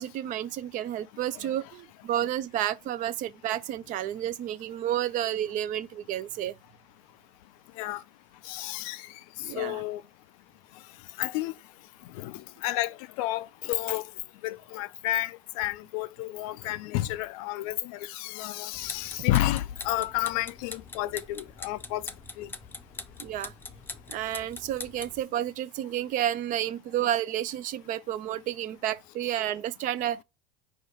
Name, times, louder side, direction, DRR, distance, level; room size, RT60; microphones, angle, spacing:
voice 1, 0.0-6.6 9.4-9.8 23.2-23.5 24.1-30.2, right 11 dB, 45° right, 0.4 m, -31 dB
voice 2, 8.4-10.0 11.2-11.5 12.1-14.1 14.4-22.1 22.4-22.5, left 15 dB, 65° left, 0.4 m, -31 dB
sound 1, 18.7-25.2, left 3 dB, 10° left, 0.6 m, -43 dB
4.9 x 2.2 x 4.2 m
hypercardioid pair, 100°, 19 cm